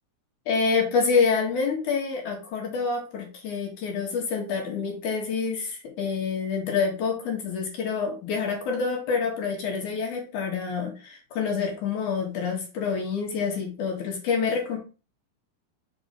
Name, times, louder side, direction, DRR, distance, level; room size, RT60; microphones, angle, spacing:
voice 1, 0.5-14.8, left 5 dB, 60° left, 2 dB, 2.6 m, -27 dB
5.2 x 4.8 x 5.1 m, 0.33 s
omnidirectional pair, 4.3 m